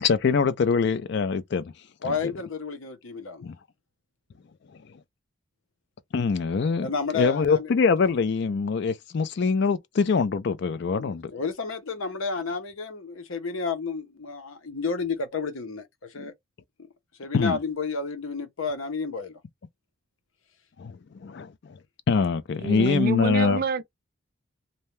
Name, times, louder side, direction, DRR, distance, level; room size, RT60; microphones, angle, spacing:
voice 1, 0.0-1.7 2.0-2.1 3.4-3.6 6.1-6.9 7.1-11.3 16.2-16.3 17.3-17.6 20.8-21.5 22.1-23.6, left 5 dB, 55° left, 0.4 m, -24 dB
voice 2, 2.0-3.5 6.8-7.7 10.9-16.3 17.2-19.4, left 4 dB, 80° left, 0.8 m, -31 dB
voice 3, 22.6-23.8, right 4 dB, 45° right, 0.3 m, -27 dB
2.7 x 2.1 x 3.1 m
head